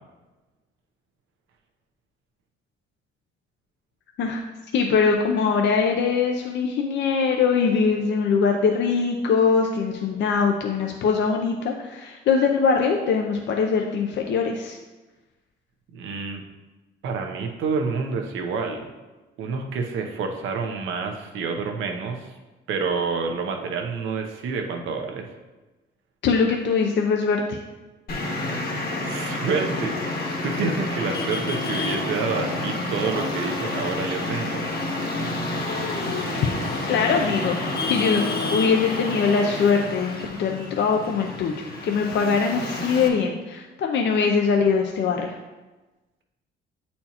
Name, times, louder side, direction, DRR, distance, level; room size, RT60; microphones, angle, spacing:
voice 1, 4.7-14.8 26.2-27.6 35.7-36.5 36.9-37.6 37.9-41.5 41.8-45.4, left 5 dB, 65° left, 2 dB, 0.5 m, -22 dB
voice 2, 15.9-16.4 17.0-18.9 19.4-22.3 22.7-25.3 29.0-30.0 30.4-34.7, right 5 dB, 85° right, 3 dB, 0.8 m, -28 dB
Traffic noise roadway noise, 28.1-43.1, left 2 dB, 50° left, 1.3 m, -29 dB
8.5 x 4.3 x 2.9 m, 1.2 s
cardioid pair, 90°, 20 cm